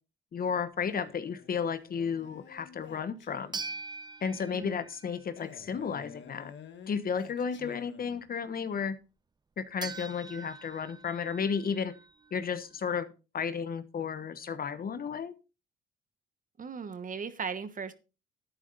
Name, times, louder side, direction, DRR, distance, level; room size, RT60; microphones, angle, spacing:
voice 1, 0.3-3.5 4.2-6.5 6.9-9.0 9.6-11.9 12.3-13.1 13.3-15.3, left 6 dB, 50° left, 12 dB, 1.2 m, -33 dB
Male speech man speaking, 0.8-3.8 5.4-8.3, left 7 dB, 65° left, 1.6 m, -50 dB
sound 1, 3.5-5.5 9.8-12.9, right 4 dB, 20° right, 0.7 m, -43 dB
voice 2, 4.5-4.8 16.6-17.9, right 6 dB, 40° right, 12 dB, 1.4 m, -37 dB
11.0 x 9.6 x 4.0 m, 0.31 s
cardioid pair, 90°, 20 cm